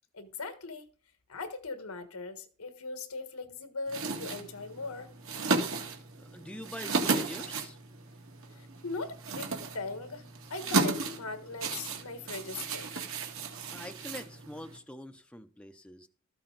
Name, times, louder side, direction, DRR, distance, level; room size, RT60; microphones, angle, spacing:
voice 1, 0.1-0.8 1.3-5.1 8.5-12.9, left 3 dB, 85° left, 1.6 m, -40 dB
sound 1, 3.9-14.8, right 3 dB, 65° right, 2.0 m, -34 dB
voice 2, 6.2-7.8 13.7-16.1, left 1 dB, 5° left, 0.6 m, -44 dB
13.0 x 8.7 x 4.0 m
head